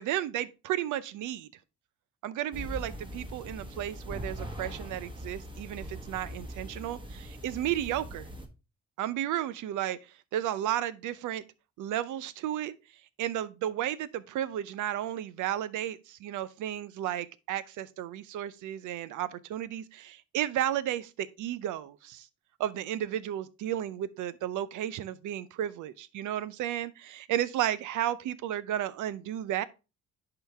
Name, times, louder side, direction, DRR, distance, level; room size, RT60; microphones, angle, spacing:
voice 1, 0.0-1.5 2.2-8.3 9.0-10.0 10.3-11.4 11.8-12.8 13.2-22.3 22.6-29.6, right 12 dB, 85° right, 0.6 m, -33 dB
sound 1, 2.5-8.5, equal, 15° right, 1.4 m, -41 dB
10.5 x 3.9 x 3.4 m
cardioid pair, 90°, 30 cm